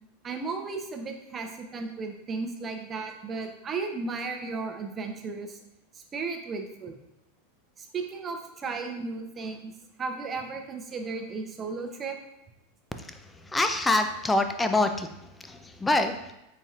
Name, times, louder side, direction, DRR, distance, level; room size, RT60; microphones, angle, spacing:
voice 1, 0.2-5.6 6.1-6.9 7.8-9.7 10.0-12.2, right 4 dB, 30° right, 4 dB, 0.7 m, -35 dB
voice 2, 13.0-15.1 15.4-16.1, left 2 dB, 10° left, 7 dB, 0.4 m, -26 dB
4.3 x 4.0 x 2.4 m, 0.89 s
hypercardioid pair, 95°, 0 cm